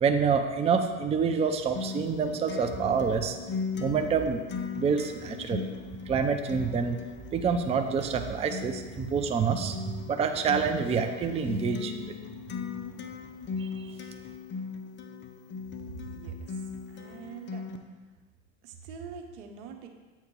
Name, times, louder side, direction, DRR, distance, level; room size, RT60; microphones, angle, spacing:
voice 1, 0.0-3.4 3.8-4.4 4.8-5.7 6.1-7.0 7.3-11.9 13.6-14.0, right 6 dB, 20° right, 6 dB, 0.4 m, -27 dB
Acoustic guitar, 1.8-17.8, left 5 dB, 30° left, 0.6 m, -38 dB
voice 2, 15.8-17.7 18.6-19.9, right 6 dB, 80° right, 5 dB, 0.9 m, -43 dB
8.0 x 2.9 x 5.9 m, 1.3 s
supercardioid pair, 100°, 35 cm